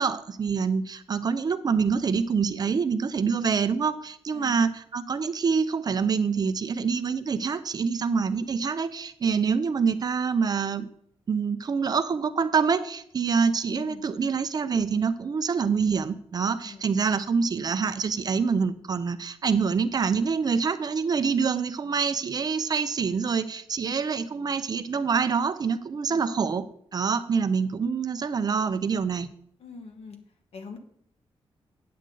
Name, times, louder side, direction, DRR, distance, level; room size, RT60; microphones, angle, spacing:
voice 1, 0.0-10.9 11.3-26.6 26.9-29.3, right 5 dB, 40° right, 12 dB, 0.5 m, -26 dB
voice 2, 13.7-14.0 16.6-16.9 26.1-26.6 29.6-30.2 30.5-30.8, left 4 dB, 80° left, 4 dB, 1.4 m, -44 dB
9.3 x 7.8 x 3.8 m, 0.66 s
wide cardioid pair, 165°, 10 cm